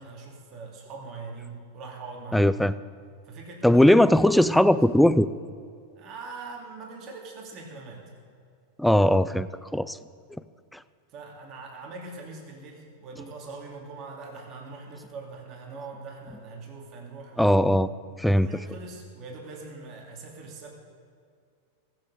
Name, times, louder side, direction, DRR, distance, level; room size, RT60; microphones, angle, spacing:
voice 1, 0.0-2.6 3.2-4.0 4.2-4.8 6.0-8.0 11.1-17.6 18.3-20.7, right 3 dB, 40° right, 0 dB, 2.5 m, -42 dB
voice 2, 2.3-2.7 3.6-5.3 8.8-10.0 10.7-10.8 17.4-17.9 18.2-18.5, left 1 dB, ahead, 15 dB, 0.4 m, -19 dB
15.0 x 7.8 x 6.8 m, 2.3 s
supercardioid pair, 125°, 0 cm